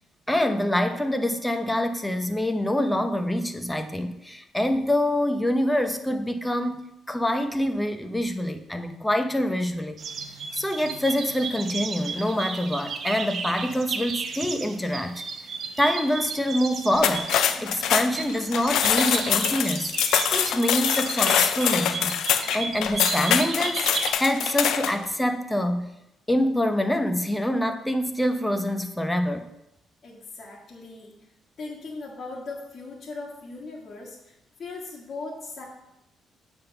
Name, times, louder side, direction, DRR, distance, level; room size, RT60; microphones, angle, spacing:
voice 1, 0.3-10.0 10.5-15.2 15.8-19.9 20.3-22.1 22.5-23.9 24.2-25.9 26.3-29.5, left 1 dB, 10° left, 7 dB, 0.7 m, -25 dB
sound 1, 10.0-24.1, right 5 dB, 60° right, 0.7 m, -34 dB
sound 2, 16.9-25.0, left 9 dB, 85° left, 0.4 m, -24 dB
voice 2, 30.0-31.1 31.6-35.6, left 3 dB, 50° left, -5 dB, 1.6 m, -39 dB
7.5 x 3.5 x 5.8 m, 0.85 s
cardioid pair, 90°, 0 cm